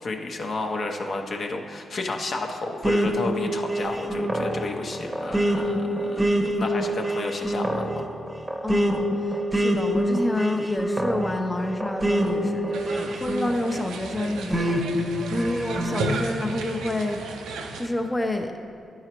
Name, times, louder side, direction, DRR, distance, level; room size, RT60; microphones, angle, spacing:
voice 1, 0.0-8.1, left 2 dB, 60° left, 2 dB, 0.7 m, -31 dB
sound 1, 2.8-13.9 14.5-16.1, right 1 dB, 25° right, 0.8 m, -26 dB
voice 2, 8.6-17.2 17.5-18.5, left 2 dB, 20° left, 3 dB, 0.6 m, -29 dB
sound 2, 12.7-17.9, right 3 dB, 80° right, 0.5 m, -33 dB
10.5 x 4.8 x 3.0 m, 2.4 s
supercardioid pair, 45°, 0 cm